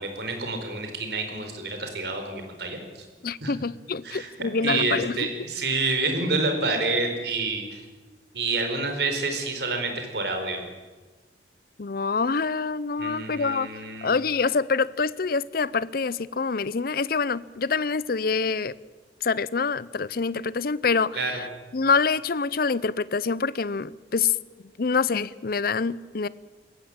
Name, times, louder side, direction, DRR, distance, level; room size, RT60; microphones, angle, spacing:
voice 1, 0.0-3.1 3.4-3.5 4.0-4.3 4.6-7.8 8.3-10.6 13.0-14.1 21.1-21.4, right 3 dB, 70° right, 4.5 m, -28 dB
voice 2, 3.2-5.3 11.8-13.7 14.0-18.7 19.2-21.2 21.7-24.3 24.8-26.3, left 4 dB, 55° left, 0.6 m, -26 dB
21.5 x 16.5 x 8.8 m
head